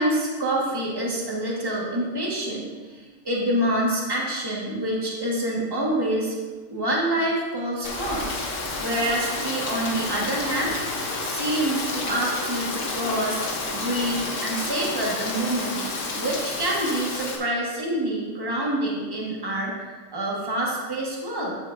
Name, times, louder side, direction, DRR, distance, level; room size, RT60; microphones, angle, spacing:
voice 1, 0.0-6.3 6.7-8.3 8.8-21.6, right 1 dB, 15° right, -4 dB, 1.5 m, -27 dB
Rain, 7.8-17.4, left 3 dB, 60° left, 1.3 m, -30 dB
13.0 x 6.3 x 2.6 m, 1.3 s
omnidirectional pair, 1.5 m